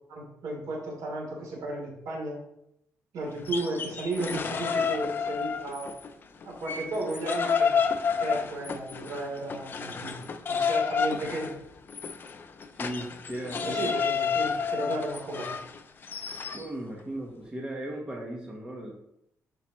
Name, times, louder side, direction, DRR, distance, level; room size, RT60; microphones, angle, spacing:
voice 1, 0.1-2.4 3.1-5.9 6.4-7.7 8.2-10.2 10.5-11.5 13.6-15.6, right 2 dB, 80° right, -2 dB, 3.1 m, -34 dB
sound 1, 3.3-6.1 6.4-16.7, left 6 dB, 35° left, 0.5 m, -30 dB
voice 2, 12.7-13.8 16.5-18.9, right 1 dB, 15° right, -2 dB, 1.2 m, -37 dB
10.5 x 5.1 x 3.0 m, 0.79 s
cardioid pair, 165°, 6 cm